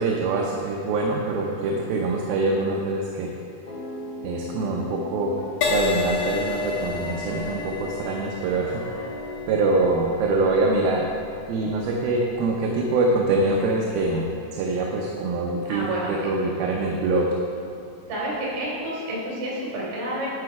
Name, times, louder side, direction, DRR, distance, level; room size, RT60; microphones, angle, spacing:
voice 1, 0.0-3.3 4.2-5.4 5.6-9.1 9.5-11.1 11.5-17.4, right 2 dB, 80° right, -1 dB, 2.6 m, -24 dB
sound 1, 3.7-10.5, left 3 dB, 35° left, 1.6 m, -39 dB
Crash cymbal, 5.6-13.3 13.9-14.2, left 4 dB, 65° left, 2.2 m, -32 dB
voice 2, 15.7-16.3 18.1-20.3, right 1 dB, 60° right, -5 dB, 4.4 m, -29 dB
9.7 x 8.7 x 4.8 m, 2.5 s
omnidirectional pair, 4.4 m